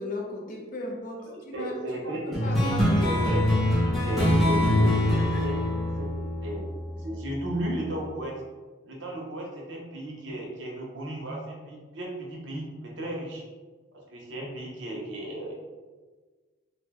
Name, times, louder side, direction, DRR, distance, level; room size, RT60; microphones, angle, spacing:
voice 1, 0.0-3.5, left 2 dB, 40° left, -1 dB, 0.5 m, -36 dB
voice 2, 1.3-5.6 6.0-6.1 6.4-6.7 7.0-8.3 8.8-13.4 14.1-15.5, right 1 dB, 70° right, -2 dB, 0.7 m, -35 dB
sound 1, 2.3-7.2, left 1 dB, ahead, 0.6 m, -24 dB
2.6 x 2.1 x 3.5 m, 1.3 s
head